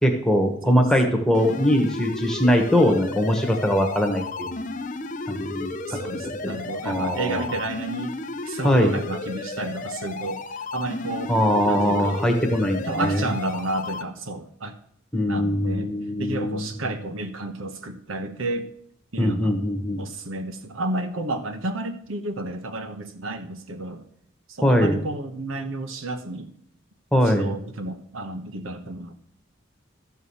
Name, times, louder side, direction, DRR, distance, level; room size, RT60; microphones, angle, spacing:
voice 1, 0.0-4.5 5.3-5.7 6.1-6.5 6.8-7.5 8.6-8.9 11.3-13.3 15.1-16.7 19.2-20.0 24.6-24.9 27.1-27.5, equal, 5° left, 3 dB, 1.3 m, -21 dB
sound 1, 1.3-14.0, left 3 dB, 40° left, 0.7 m, -34 dB
voice 2, 5.8-8.2 8.4-11.3 11.7-12.2 12.8-14.8 15.3-15.9 16.2-18.7 19.1-19.6 20.0-24.0 24.5-26.5 27.2-29.1, right 2 dB, 80° right, 7 dB, 1.1 m, -31 dB
13.5 x 4.8 x 7.1 m, 0.66 s
head